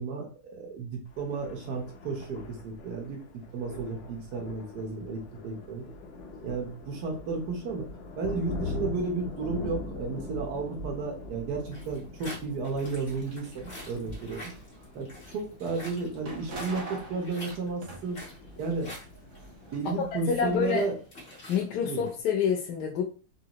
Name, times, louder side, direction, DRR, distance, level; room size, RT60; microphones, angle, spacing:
voice 1, 0.0-3.2 3.5-5.8 6.4-7.9 8.2-14.5 14.9-18.2 18.6-18.9 19.7-20.9 21.8-22.1, right 4 dB, 85° right, 1 dB, 1.6 m, -33 dB
Thunder, 1.1-20.8, left 2 dB, 60° left, 0.8 m, -43 dB
sound 1, 11.7-22.2, left 1 dB, 45° left, 1.5 m, -48 dB
sound 2, 13.0-15.1 15.5-20.0 20.3-22.0, right 3 dB, 55° right, 1.2 m, -47 dB
voice 2, 20.3-20.8 21.5-23.0, left 7 dB, 80° left, 0 dB, 1.2 m, -27 dB
3.9 x 2.7 x 2.9 m, 0.36 s
omnidirectional pair, 1.7 m